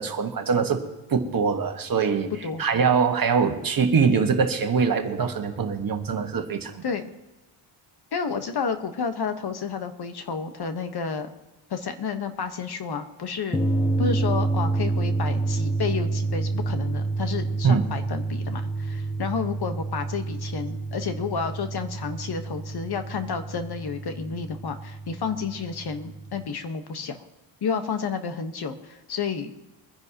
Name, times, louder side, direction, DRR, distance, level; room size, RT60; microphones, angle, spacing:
voice 1, 0.0-2.3 2.6-6.8 17.6-17.8, right 5 dB, 45° right, 5 dB, 1.5 m, -23 dB
voice 2, 8.1-11.3 11.7-13.6 14.0-27.2 27.6-29.5, left 5 dB, 55° left, 7 dB, 1.3 m, -31 dB
sound 1, 13.5-26.5, right 3 dB, 10° left, 0.9 m, -28 dB
23.5 x 10.5 x 2.9 m, 1.1 s
wide cardioid pair, 130°, 47 cm